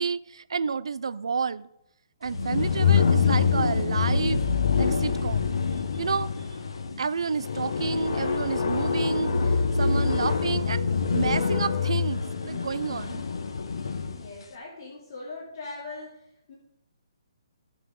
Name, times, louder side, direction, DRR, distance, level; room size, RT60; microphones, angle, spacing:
voice 1, 0.0-1.7 2.2-4.4 4.8-5.5 5.9-6.3 7.0-13.2, right 5 dB, 80° right, 0.5 m, -30 dB
sound 1, 2.3-14.3, left 5 dB, 70° left, 1.3 m, -25 dB
voice 2, 14.0-16.6, left 3 dB, 45° left, 2.8 m, -41 dB
16.0 x 6.2 x 3.8 m
hypercardioid pair, 160°, 3 cm